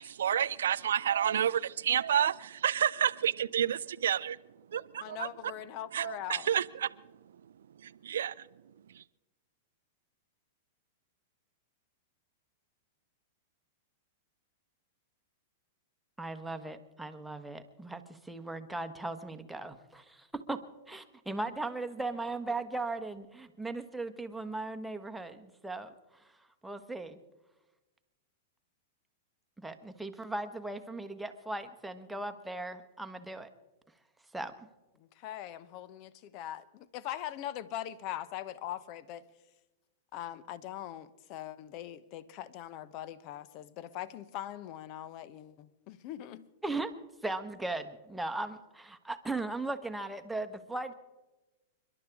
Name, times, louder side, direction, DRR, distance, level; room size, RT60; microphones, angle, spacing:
voice 1, 0.0-4.4 4.7-5.3 5.9-6.9 7.8-8.3, right 9 dB, 65° right, 0.4 m, -29 dB
voice 2, 5.0-6.5 35.0-39.2 40.1-46.5, left 12 dB, 45° left, 0.9 m, -41 dB
voice 3, 16.2-26.2 26.6-27.2 29.6-33.5 34.3-34.7 46.6-46.9 47.2-50.9, right 2 dB, 5° right, 1.3 m, -38 dB
29.5 x 12.0 x 3.7 m
figure-of-eight pair, 100°, 0 cm